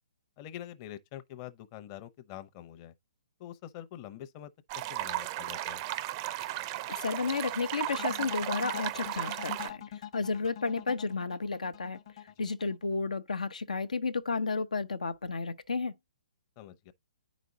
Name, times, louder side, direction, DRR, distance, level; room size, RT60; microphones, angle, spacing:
voice 1, 0.4-2.9 3.4-5.8 12.4-12.5 16.6-16.9, left 12 dB, 30° left, 0.7 m, -45 dB
sound 1, 4.7-9.7, right 16 dB, 35° right, 0.5 m, -35 dB
voice 2, 6.9-12.0 12.4-15.9, left 4 dB, 90° left, 0.8 m, -32 dB
sound 2, 7.9-13.0, left 10 dB, 50° left, 1.1 m, -44 dB
9.2 x 5.1 x 2.7 m
hypercardioid pair, 145°, 4 cm